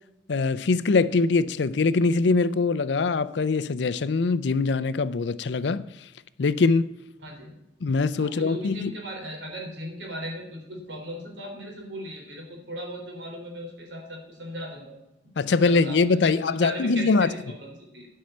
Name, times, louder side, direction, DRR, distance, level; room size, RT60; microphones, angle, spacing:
voice 1, 0.3-5.8 6.4-6.9 7.8-8.9 15.4-17.3, left 4 dB, 75° left, 0.5 m, -23 dB
voice 2, 7.2-7.6 8.2-14.9 15.5-18.1, equal, 85° right, 3.7 m, -37 dB
10.5 x 5.6 x 7.8 m
head